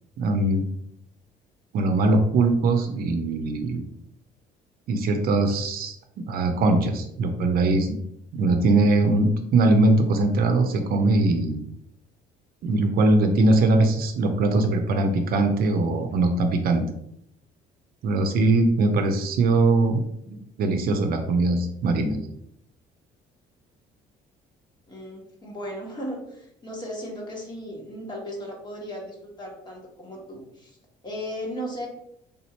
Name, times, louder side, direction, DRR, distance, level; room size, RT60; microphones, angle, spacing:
voice 1, 0.2-0.7 1.7-3.8 4.9-8.0 8.3-11.6 12.6-16.8 18.0-22.2, right 2 dB, 60° right, 5 dB, 0.6 m, -21 dB
voice 2, 24.9-30.8 31.0-31.9, equal, 25° left, -2 dB, 1.5 m, -36 dB
3.5 x 2.7 x 4.4 m, 0.75 s
cardioid pair, 110°, 17 cm